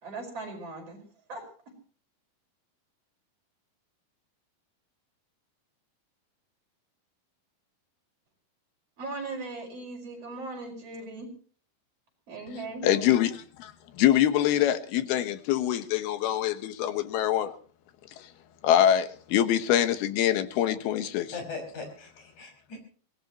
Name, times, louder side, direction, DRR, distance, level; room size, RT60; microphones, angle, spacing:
voice 1, 0.0-1.0 1.3-1.5 9.0-11.3 12.3-13.2, right 3 dB, 40° right, 2 dB, 6.1 m, -38 dB
voice 2, 12.8-17.5 18.6-21.4, left 11 dB, 90° left, 11 dB, 3.2 m, -24 dB
voice 3, 21.3-22.8, left 4 dB, 50° left, 4 dB, 6.9 m, -39 dB
23.5 x 19.0 x 3.0 m, 0.41 s
omnidirectional pair, 4.3 m